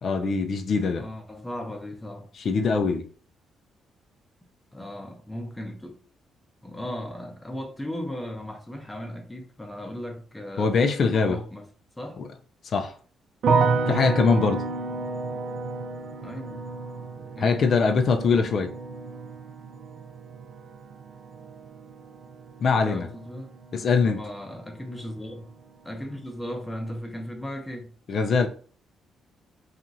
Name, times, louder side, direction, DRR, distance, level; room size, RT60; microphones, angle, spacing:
voice 1, 0.0-1.1 2.4-3.1 10.6-11.4 12.2-12.3 12.7-13.0 13.9-14.6 17.4-18.7 22.6-23.1 23.7-24.2 28.1-28.5, left 5 dB, 55° left, 0.4 m, -22 dB
voice 2, 1.0-2.3 4.7-6.0 6.6-11.7 12.0-12.2 16.2-16.6 17.4-17.7 22.7-25.5 25.8-27.9, left 1 dB, 10° left, 0.7 m, -37 dB
sound 1, 13.4-24.5 24.8-25.5, right 4 dB, 60° right, 0.4 m, -31 dB
2.9 x 2.4 x 2.6 m
cardioid pair, 90°, 0 cm